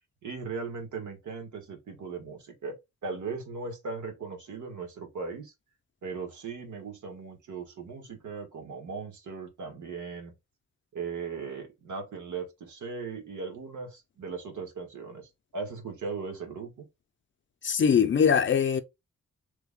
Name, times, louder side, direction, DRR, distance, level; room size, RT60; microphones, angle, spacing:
voice 1, 0.2-2.8 3.0-5.5 6.0-10.3 10.9-16.9, right 4 dB, 80° right, 1.3 m, -38 dB
voice 2, 17.6-18.8, left 7 dB, 40° left, 0.4 m, -22 dB
3.2 x 2.1 x 3.5 m
wide cardioid pair, 140°, 30 cm